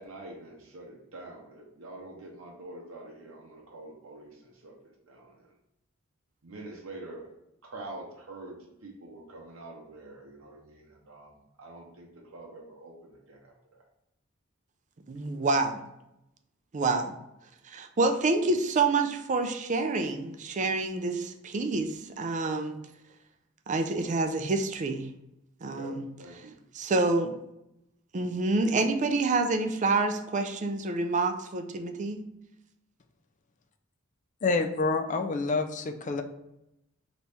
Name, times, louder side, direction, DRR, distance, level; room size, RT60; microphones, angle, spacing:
voice 1, 0.0-5.5 6.4-7.3 7.6-8.6 8.8-13.8 25.7-26.5, right 2 dB, 80° right, -2 dB, 0.7 m, -46 dB
voice 2, 15.1-15.8 16.7-17.2 17.6-22.8 23.7-25.1 25.6-26.1 26.7-27.4 28.1-32.2, right 3 dB, 35° right, 7 dB, 0.4 m, -27 dB
voice 3, 34.4-36.2, left 3 dB, 35° left, 7 dB, 0.4 m, -27 dB
3.4 x 3.0 x 4.1 m, 0.85 s
head